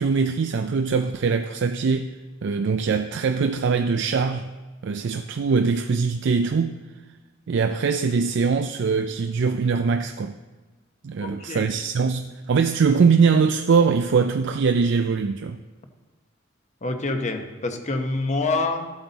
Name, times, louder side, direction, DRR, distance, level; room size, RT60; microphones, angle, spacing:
voice 1, 0.0-2.2 2.4-4.5 4.8-6.8 7.5-10.3 11.0-15.6, right 5 dB, 65° right, 0.4 m, -22 dB
voice 2, 11.2-11.7 16.8-18.9, left 3 dB, 35° left, 1.0 m, -26 dB
14.0 x 8.1 x 4.0 m
head